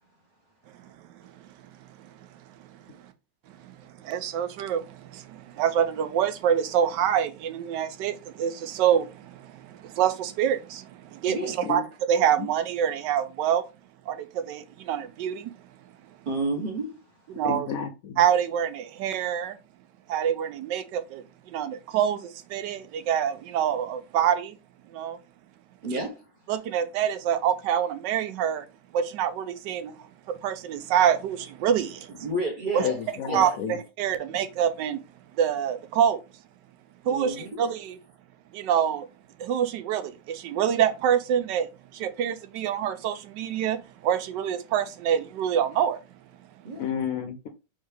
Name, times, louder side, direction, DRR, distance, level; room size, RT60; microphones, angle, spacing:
voice 1, 0.8-1.5 1.8-2.3 2.6-3.1 3.5-11.8 12.1-13.6 14.1-15.5 17.3-17.7 18.2-19.6 20.1-24.6 24.9-25.2 26.5-28.7 28.9-32.3 32.7-32.8 33.3-35.0 35.3-36.2 37.1-38.0 38.5-39.1 39.4-46.0, right 9 dB, 80° right, 1.2 m, -26 dB
voice 2, 16.3-17.0 25.8-26.2 32.2-33.0 33.3-33.5 37.0-37.6 46.6-46.9, right 2 dB, 45° right, 0.7 m, -30 dB
voice 3, 17.4-18.2 32.8-33.8 46.8-47.5, left 7 dB, 70° left, 0.8 m, -31 dB
3.7 x 3.2 x 3.3 m
omnidirectional pair, 1.9 m